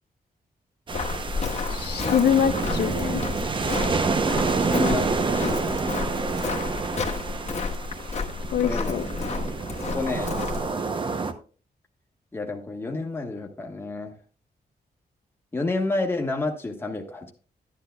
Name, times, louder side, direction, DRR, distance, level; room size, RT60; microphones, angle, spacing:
Walk footsteps, 0.9-10.7, left 4 dB, 45° left, 1.3 m, -31 dB
sound 1, 0.9-11.3, right 4 dB, 30° right, 0.7 m, -28 dB
voice 1, 1.7-3.2 8.5-9.1, left 8 dB, 85° left, 9 dB, 0.7 m, -24 dB
voice 2, 4.5-5.1 5.4-5.8 8.6-9.0 9.9-10.3 12.3-14.1 15.5-17.3, left 2 dB, 15° left, 2 dB, 1.3 m, -29 dB
12.0 x 10.0 x 2.3 m, 0.39 s
wide cardioid pair, 165°, 16 cm